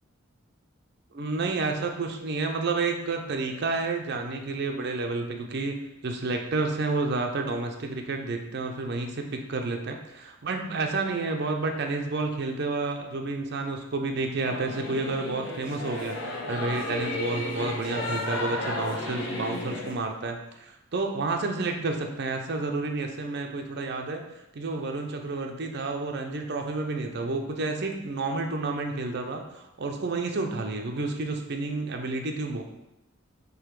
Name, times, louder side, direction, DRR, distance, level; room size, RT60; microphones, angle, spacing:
voice 1, 1.1-5.8 6.0-16.2 16.5-24.2 24.5-32.6, right 3 dB, 55° right, 3 dB, 0.6 m, -30 dB
Singing / Musical instrument, 14.4-19.9, left 1 dB, 70° left, 1.0 m, -33 dB
3.9 x 2.8 x 4.6 m, 0.91 s
head